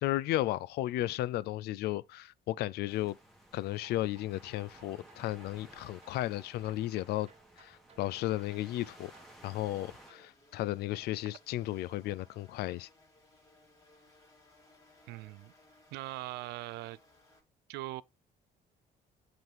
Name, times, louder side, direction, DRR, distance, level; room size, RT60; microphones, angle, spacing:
voice 1, 0.0-3.2 3.5-7.3 7.6-9.1 9.4-12.9, left 15 dB, 75° left, 0.4 m, -34 dB
sound 1, 2.9-10.1, right 1 dB, ahead, 1.9 m, -57 dB
sound 2, 3.7-10.3, right 5 dB, 40° right, 1.2 m, -63 dB
sound 3, 8.2-17.4, left 2 dB, 20° left, 2.5 m, -63 dB
voice 2, 15.1-15.5 15.9-17.0 17.7-18.0, right 17 dB, 85° right, 0.4 m, -40 dB
7.9 x 3.8 x 3.4 m
cardioid pair, 110°, 17 cm